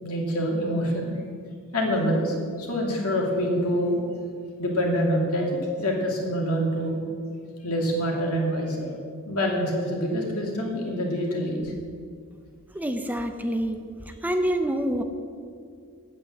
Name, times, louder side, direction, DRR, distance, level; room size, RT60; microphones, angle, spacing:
voice 1, 0.0-1.1 1.7-4.0 4.6-5.5 5.8-7.0 7.6-8.9 9.3-11.7, equal, 80° left, -1 dB, 2.5 m, -26 dB
voice 2, 12.8-13.8 14.2-15.0, right 1 dB, 5° right, 6 dB, 0.5 m, -26 dB
8.7 x 8.7 x 7.3 m, 2.3 s
head